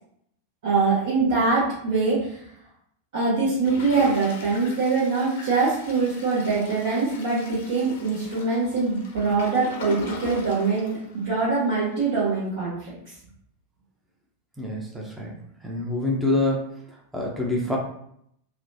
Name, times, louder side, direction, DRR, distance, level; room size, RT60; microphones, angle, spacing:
voice 1, 0.6-2.4 3.1-13.0, right 4 dB, 55° right, -9 dB, 1.0 m, -23 dB
Toilet flush, 3.6-11.7 12.2-12.3 12.4-12.5, left 2 dB, 55° left, 0.5 m, -39 dB
voice 2, 14.6-15.4 15.6-16.8 17.1-17.8, left 2 dB, 5° right, -3 dB, 0.6 m, -26 dB
3.1 x 2.1 x 2.6 m, 0.72 s
figure-of-eight pair, 90°, 0 cm